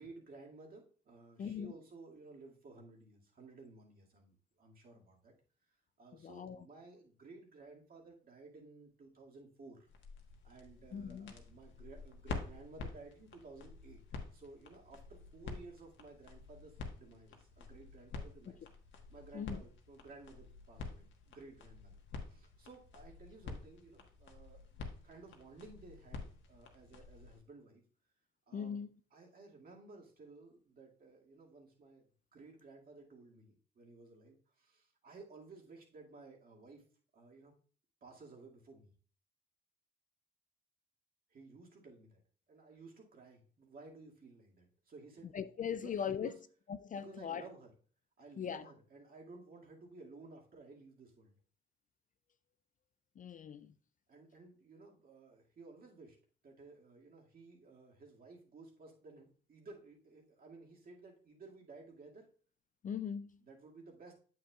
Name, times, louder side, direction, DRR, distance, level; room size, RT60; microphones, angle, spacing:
voice 1, 0.0-5.3 6.0-9.9 10.4-14.0 14.3-18.7 19.1-27.8 28.5-28.8 29.1-32.0 32.3-36.8 37.1-37.5 38.0-38.9 41.3-42.2 42.5-46.4 47.0-47.7 48.2-51.4 54.1-56.2 56.4-62.3 63.4-64.2, right 3 dB, 45° right, 2.2 m, -56 dB
voice 2, 1.4-1.7 6.2-6.6 10.9-11.3 19.3-19.6 28.5-28.9 45.3-46.3 46.7-47.4 48.4-48.6 53.2-53.7 62.8-63.4, left 7 dB, 40° left, 0.4 m, -40 dB
sound 1, 9.9-27.4, left 4 dB, 70° left, 1.3 m, -49 dB
8.3 x 7.6 x 2.4 m
cardioid pair, 90°, 20 cm